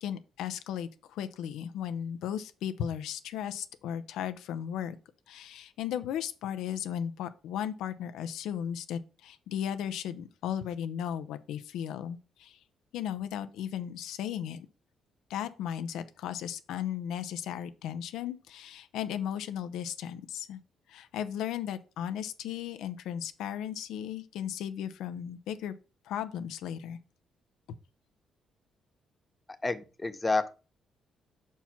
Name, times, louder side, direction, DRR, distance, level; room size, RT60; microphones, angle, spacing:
voice 1, 0.0-4.9 5.3-12.6 12.9-14.7 15.3-20.6 20.9-25.8 26.0-27.0, left 9 dB, 85° left, 0.6 m, -36 dB
voice 2, 29.6-30.5, left 3 dB, 15° left, 0.8 m, -29 dB
5.6 x 4.6 x 5.8 m
cardioid pair, 90°, 0 cm